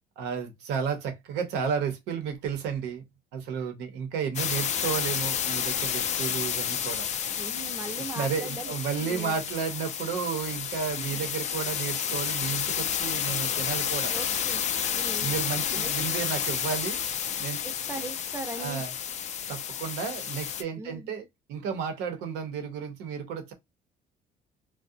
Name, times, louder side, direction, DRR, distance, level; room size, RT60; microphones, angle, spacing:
voice 1, 0.2-3.0 3.3-7.1 7.9-14.1 15.2-17.0 17.4-17.6 18.6-18.9 19.5-21.2 21.5-23.5, right 7 dB, 90° right, 0.7 m, -32 dB
sound 1, 4.4-20.6, left 8 dB, 45° left, 0.4 m, -30 dB
voice 2, 7.4-9.4 11.0-11.2 14.1-14.6 14.9-15.3 15.7-15.9 17.6-18.8 20.8-21.1, right 2 dB, 15° right, 0.6 m, -39 dB
2.4 x 2.1 x 2.6 m
cardioid pair, 110°, 17 cm